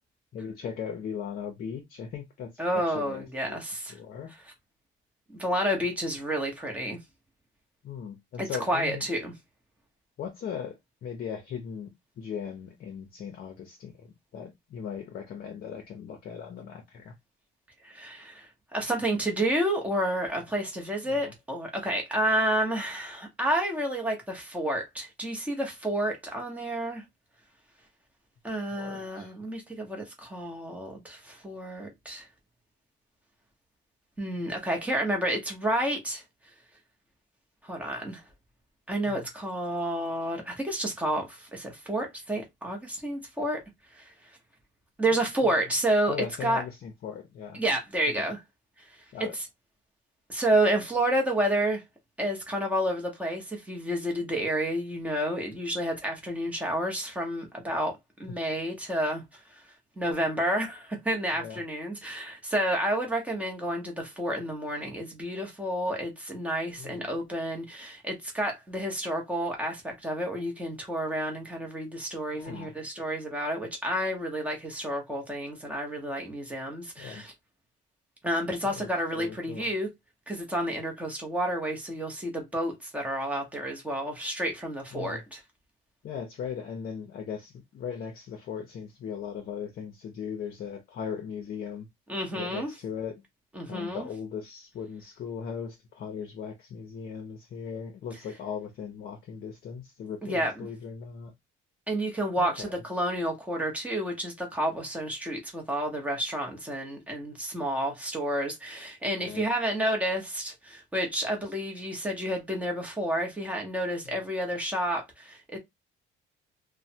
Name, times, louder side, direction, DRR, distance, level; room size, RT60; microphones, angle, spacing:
voice 1, 0.3-3.6 3.9-4.3 7.8-9.0 10.2-10.8 11.0-11.9 12.2-17.1 21.1-21.3 28.7-29.3 39.1-39.3 45.4-45.5 46.1-47.6 48.2-48.3 49.1-49.3 61.4-61.6 66.8-67.1 72.3-72.7 77.0-77.2 78.6-78.9 79.1-79.7 84.9-85.2 86.0-91.9 92.4-93.2 93.7-101.3 102.4-102.7 109.2-109.4, left 7 dB, 45° left, 0.7 m, -38 dB
voice 2, 2.6-3.9 5.3-7.0 8.4-9.3 17.8-27.0 28.4-32.3 34.2-36.2 37.6-38.2 38.9-43.6 43.9-44.1 45.0-46.1 46.4-46.6 47.5-48.4 49.3-49.5 50.3-51.8 52.2-57.9 58.2-59.2 59.5-59.6 60.0-77.3 78.2-79.9 80.3-85.4 92.1-92.7 93.5-94.1 100.2-100.7 101.9-115.6, right 1 dB, 5° right, 0.8 m, -30 dB
3.0 x 2.1 x 2.7 m
cardioid pair, 165°, 21 cm